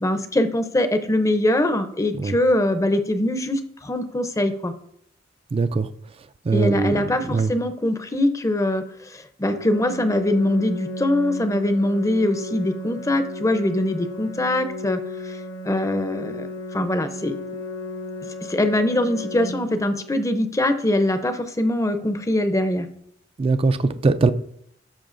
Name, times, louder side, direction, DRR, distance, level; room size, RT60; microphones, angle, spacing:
voice 1, 0.0-4.7 6.5-15.0 15.3-15.4 15.6-16.5 16.7-17.4 18.5-22.9, left 1 dB, 15° left, 0.5 m, -22 dB
voice 2, 5.5-5.9 6.5-7.0 7.3-7.5 23.4-24.3, right 3 dB, 30° right, 0.3 m, -20 dB
Organ, 9.5-20.5, left 1 dB, 65° left, 1.1 m, -34 dB
13.5 x 5.9 x 2.5 m
head